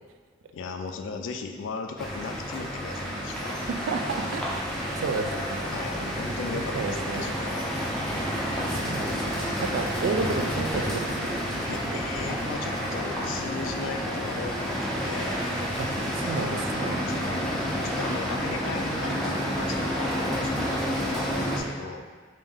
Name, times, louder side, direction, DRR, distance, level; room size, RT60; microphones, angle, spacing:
voice 1, 0.5-3.6 5.7-7.6 11.7-15.4 16.2-16.5 17.1-17.4 17.8-22.0, left 4 dB, 75° left, 5 dB, 0.3 m, -37 dB
sound 1, 2.0-21.6, equal, 5° left, 0.5 m, -30 dB
voice 2, 3.7-4.5 5.0-5.7 6.0-6.2 6.5-7.3 8.5-11.4 11.9-12.0 15.8-15.9 16.1-17.1, right 4 dB, 75° right, 5 dB, 0.3 m, -32 dB
3.4 x 2.6 x 3.5 m, 1.5 s
head